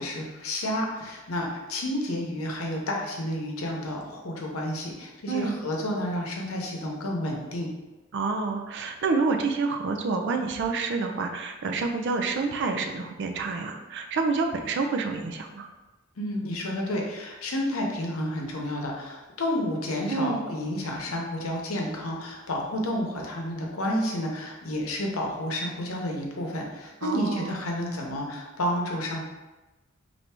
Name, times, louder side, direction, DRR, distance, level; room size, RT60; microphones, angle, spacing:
voice 1, 0.0-7.7 16.2-29.3, left 1 dB, 80° left, 0 dB, 0.8 m, -30 dB
voice 2, 5.3-5.6 8.1-15.7 20.1-20.4 27.0-27.6, right 4 dB, 60° right, 5 dB, 0.4 m, -28 dB
3.3 x 2.6 x 4.3 m, 1.1 s
head